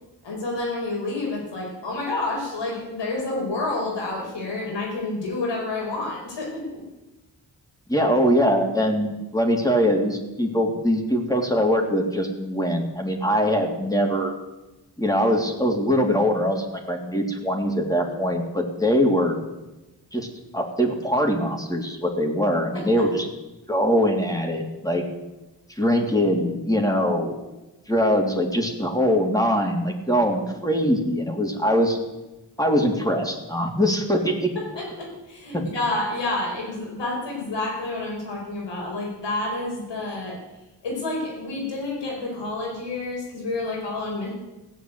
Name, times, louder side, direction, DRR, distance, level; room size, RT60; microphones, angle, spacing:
voice 1, 0.2-6.8 22.7-23.1 34.6-40.4 40.8-44.3, left 2 dB, 85° left, -1 dB, 5.2 m, -29 dB
voice 2, 7.9-14.3 15.0-19.4 20.1-20.3 20.5-23.3 23.7-25.0 25.8-27.4 27.9-32.0 32.6-34.5 35.5-35.6, equal, 10° left, 1 dB, 3.2 m, -22 dB
16.0 x 8.1 x 8.1 m, 1.0 s
cardioid pair, 45°, 42 cm